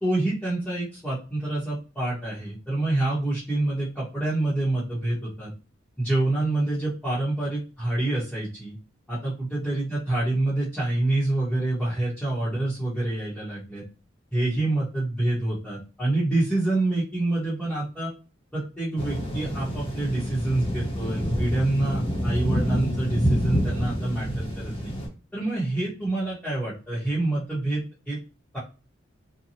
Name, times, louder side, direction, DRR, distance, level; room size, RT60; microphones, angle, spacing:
voice 1, 0.0-5.5 6.0-8.7 9.1-13.8 14.3-18.1 18.5-24.9 25.3-28.2 28.5-28.6, right 2 dB, 5° left, -10 dB, 1.0 m, -27 dB
sound 1, 19.0-25.1, equal, 30° left, 0.9 m, -27 dB
2.8 x 2.2 x 2.7 m, 0.33 s
head